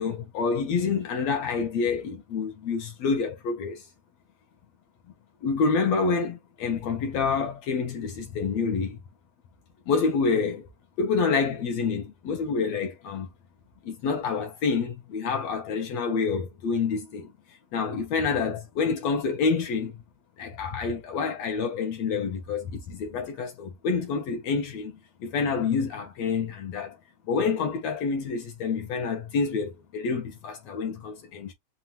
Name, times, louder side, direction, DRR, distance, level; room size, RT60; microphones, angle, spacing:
voice 1, 0.0-3.8 5.4-9.0 9.9-10.7 11.0-13.3 13.8-17.3 17.7-20.0 20.4-27.0 27.3-31.5, left 5 dB, 70° left, 1.8 m, -27 dB
5.5 x 2.4 x 2.9 m
omnidirectional pair, 3.7 m